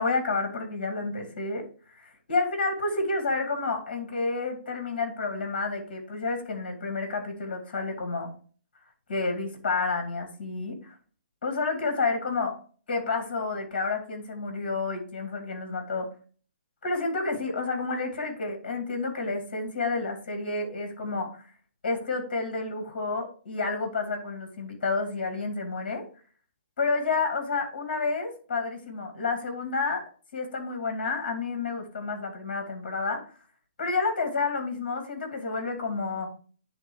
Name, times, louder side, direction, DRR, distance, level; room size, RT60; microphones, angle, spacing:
voice 1, 0.0-8.3 9.1-10.9 11.4-12.6 12.9-16.1 16.8-21.4 21.8-26.0 26.8-30.0 30.3-33.2 33.8-36.3, left 3 dB, 45° left, 5 dB, 2.3 m, -30 dB
9.8 x 3.7 x 4.6 m, 0.42 s
hypercardioid pair, 180°, 6 cm